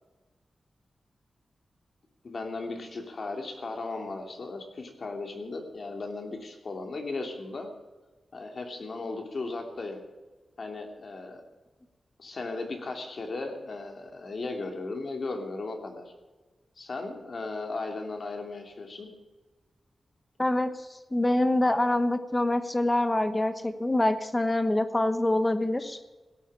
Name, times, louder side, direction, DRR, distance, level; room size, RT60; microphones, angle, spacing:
voice 1, 2.2-7.7 8.3-10.0 10.6-11.4 12.2-16.1 16.8-19.1, left 3 dB, 50° left, 4 dB, 2.7 m, -36 dB
voice 2, 20.4-20.7 21.1-26.0, left 1 dB, 15° left, 11 dB, 1.1 m, -25 dB
17.0 x 8.9 x 8.7 m, 1.2 s
wide cardioid pair, 125°, 0 cm